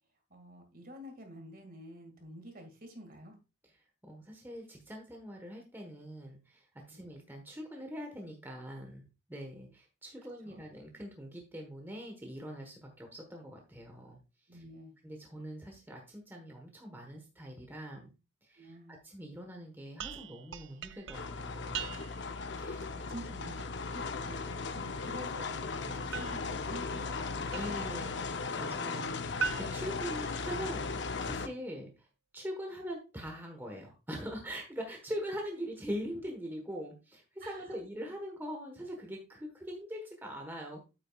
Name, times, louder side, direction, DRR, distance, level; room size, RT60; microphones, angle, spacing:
voice 1, 0.3-3.4 6.9-7.0 10.4-10.7 14.5-15.0 18.6-19.0 22.6-28.2 28.7-29.1 37.4-37.8, equal, 45° right, 5 dB, 2.0 m, -49 dB
voice 2, 4.0-9.0 9.3-14.2 14.5-14.6 15.0-18.1 18.4-22.0 22.6-22.8 25.8-26.1 27.5-28.2 28.6-32.1 32.3-40.8, equal, 10° right, 2 dB, 1.2 m, -42 dB
sound 1, 20.0-22.4 26.1-28.0 29.4-30.9, right 6 dB, 65° right, 0.5 m, -41 dB
sound 2, 21.1-31.5, left 4 dB, 55° left, 0.7 m, -37 dB
8.8 x 8.5 x 2.3 m, 0.29 s
head